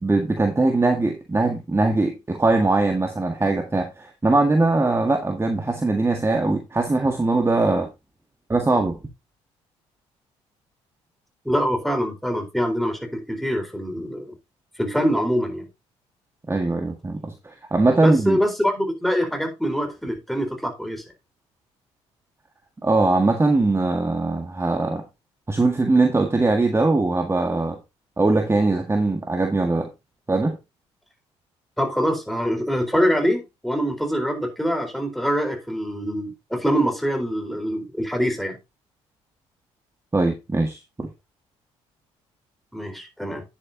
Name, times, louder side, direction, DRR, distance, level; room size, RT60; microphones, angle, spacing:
voice 1, 0.0-7.9 8.5-9.0 16.5-18.4 22.8-25.0 25.5-27.8 28.2-29.9 30.3-30.6 40.1-41.1, right 2 dB, 20° right, 1.7 m, -21 dB
voice 2, 11.4-14.3 14.8-15.7 18.0-21.0 31.8-38.6 42.7-43.4, equal, ahead, 4.1 m, -24 dB
9.8 x 8.9 x 2.8 m
hypercardioid pair, 55°, 14 cm